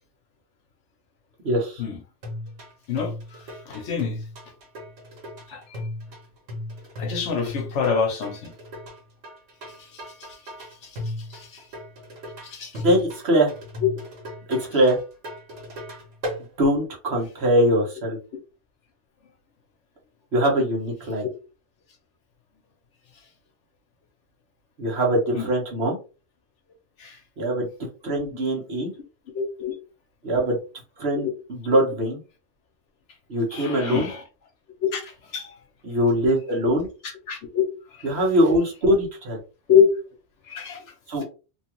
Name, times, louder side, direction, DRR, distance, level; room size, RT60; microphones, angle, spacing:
voice 1, 1.4-1.8 12.7-13.5 14.5-15.0 16.6-18.2 20.3-21.3 24.8-26.0 27.4-27.7 28.0-28.9 30.2-30.6 31.0-32.2 33.3-34.1 35.8-36.9 38.0-39.4 41.1-41.2, equal, 60° right, 1.3 m, -22 dB
sound 1, 2.2-16.4, left 1 dB, 85° right, 1.5 m, -36 dB
voice 2, 2.9-4.2 5.5-5.8 7.0-8.5 9.8-10.4 10.8-11.6 12.4-12.8 13.8-13.9 25.3-25.5 27.0-27.2 29.3-29.7 31.1-31.3 33.5-34.2 34.9-35.6 37.3-37.6 37.9-38.1 39.7-39.8 40.4-40.8, left 7 dB, 70° left, 1.1 m, -26 dB
3.1 x 2.3 x 2.9 m
omnidirectional pair, 1.2 m